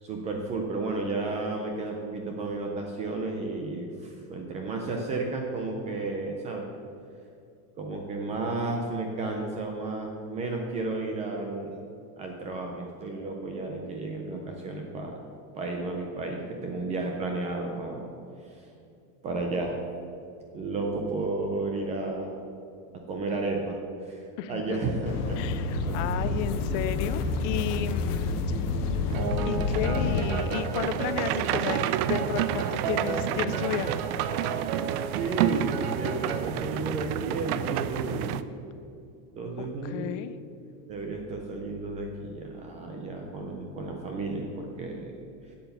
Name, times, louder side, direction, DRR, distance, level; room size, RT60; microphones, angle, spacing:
voice 1, 0.0-6.7 7.8-11.8 12.2-15.2 15.5-18.1 18.4-18.7 19.2-19.8 20.5-22.3 23.1-25.4 25.9-26.0 28.0-28.7 34.9-38.4 39.4-40.1 40.9-45.1, right 3 dB, 15° right, 2 dB, 0.3 m, -33 dB
voice 2, 24.4-24.8 25.4-28.4 29.5-34.0 39.8-40.3, left 10 dB, 55° left, 13 dB, 0.6 m, -33 dB
sound 1, 25.1-30.2, left 3 dB, 85° left, 1.1 m, -28 dB
sound 2, 29.1-36.5, right 6 dB, 45° right, 1.0 m, -34 dB
sound 3, 29.1-38.4, right 11 dB, 80° right, 0.6 m, -30 dB
8.3 x 7.8 x 6.7 m, 2.5 s
supercardioid pair, 165°, 44 cm